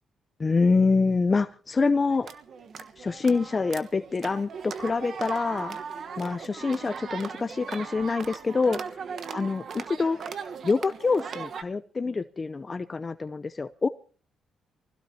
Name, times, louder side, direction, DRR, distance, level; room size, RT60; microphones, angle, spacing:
voice 1, 0.4-2.3 3.0-5.8 6.2-9.0 9.3-13.9, left 4 dB, 30° left, 13 dB, 0.6 m, -26 dB
sound 1, 2.1-11.6, right 6 dB, 55° right, 1.2 m, -38 dB
24.0 x 16.0 x 2.9 m, 0.39 s
cardioid pair, 85°, 0 cm